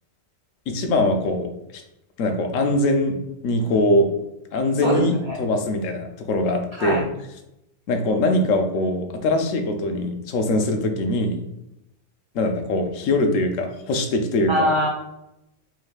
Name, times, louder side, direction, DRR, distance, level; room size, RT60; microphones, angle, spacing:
voice 1, 0.7-1.8 2.2-4.1 4.5-7.0 7.9-11.4 12.3-14.7, left 1 dB, 90° left, 5 dB, 1.0 m, -22 dB
voice 2, 4.8-5.4 6.8-7.0 14.5-14.9, equal, 25° right, -4 dB, 0.9 m, -22 dB
4.8 x 3.1 x 2.3 m, 0.86 s
omnidirectional pair, 1.3 m